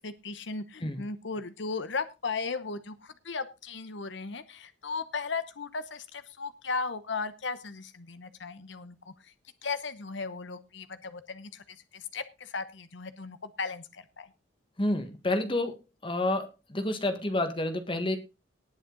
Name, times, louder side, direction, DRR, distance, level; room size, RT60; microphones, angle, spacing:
voice 1, 0.0-9.3 9.6-14.3, left 4 dB, 70° left, 12 dB, 0.9 m, -36 dB
voice 2, 14.8-15.7 16.0-18.2, left 1 dB, 25° left, 8 dB, 1.6 m, -29 dB
19.0 x 6.5 x 3.9 m, 0.28 s
head